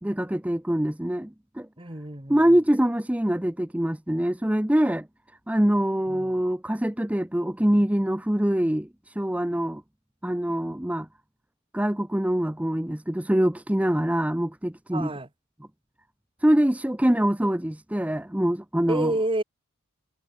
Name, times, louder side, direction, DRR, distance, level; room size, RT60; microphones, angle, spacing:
voice 1, 0.0-1.7 2.3-5.1 5.5-9.8 10.2-11.1 11.7-15.1 16.4-19.1, equal, 5° right, 0.7 m, -24 dB
voice 2, 1.8-2.6 6.1-6.4 14.9-15.3 18.9-19.4, right 1 dB, 25° right, 2.5 m, -29 dB
head